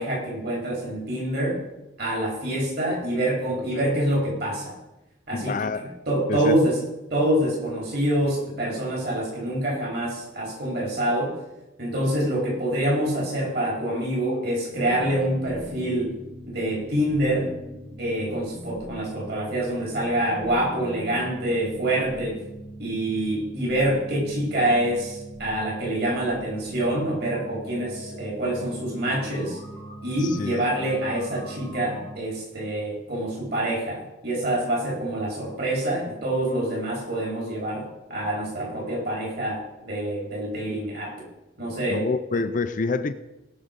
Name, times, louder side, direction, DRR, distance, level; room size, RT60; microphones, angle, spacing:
voice 1, 0.0-1.6 2.0-4.8 5.3-6.8 7.1-11.3 11.8-16.1 16.5-17.5 18.0-22.4 22.8-29.6 30.0-41.2 41.6-42.1, right 1 dB, 50° right, -3 dB, 4.1 m, -26 dB
voice 2, 5.3-5.9 6.3-6.6 30.4-30.6 41.9-43.1, left 4 dB, 40° left, 11 dB, 0.4 m, -27 dB
sound 1, 14.7-32.2, right 1 dB, 80° right, 2.8 m, -41 dB
17.5 x 6.1 x 5.2 m, 0.98 s
head